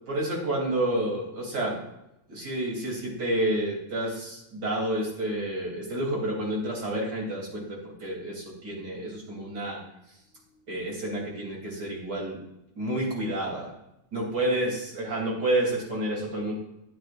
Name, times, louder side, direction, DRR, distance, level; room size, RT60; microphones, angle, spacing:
voice 1, 0.1-1.8 2.3-9.8 10.7-12.4 12.8-13.7 14.1-16.5, right 1 dB, 35° right, -2 dB, 3.2 m, -29 dB
13.0 x 9.1 x 2.5 m, 0.84 s
omnidirectional pair, 3.4 m